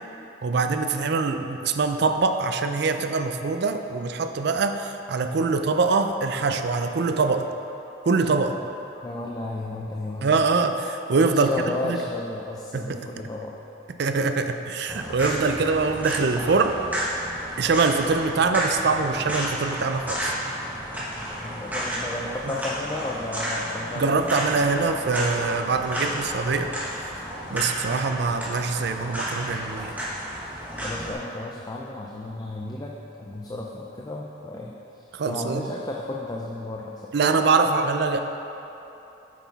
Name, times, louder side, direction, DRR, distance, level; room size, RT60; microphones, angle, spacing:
voice 1, 0.4-7.5 8.0-8.6 10.2-11.5 11.8-12.0 12.7-13.0 14.0-16.8 17.6-20.3 24.0-26.7 27.0-30.0 35.1-35.7 37.1-38.2, right 4 dB, 60° right, 7 dB, 0.4 m, -24 dB
voice 2, 9.0-10.4 11.3-13.6 21.4-24.1 30.7-37.4, left 2 dB, 20° left, -2 dB, 0.4 m, -33 dB
sound 1, 14.9-31.1, equal, 10° right, 1.2 m, -32 dB
8.3 x 6.1 x 4.0 m, 3.0 s
head